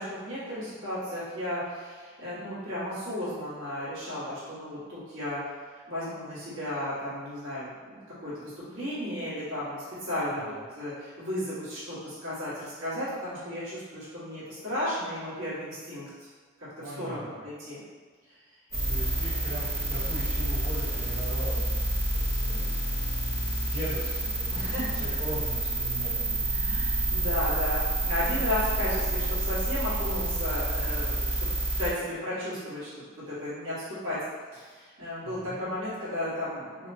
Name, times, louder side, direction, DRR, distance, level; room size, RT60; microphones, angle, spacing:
voice 1, 0.0-5.4 5.9-16.3 16.6-17.8 24.5-24.9 26.5-34.2 34.5-36.9, left 1 dB, 75° right, -11 dB, 1.1 m, -34 dB
voice 2, 16.8-17.5 18.9-21.6 22.1-22.8 23.2-26.5 35.2-35.7, right 1 dB, 25° right, -13 dB, 0.9 m, -40 dB
sound 1, 18.7-31.9, right 1 dB, 10° left, 0.6 m, -29 dB
2.8 x 2.0 x 2.6 m, 1.5 s
head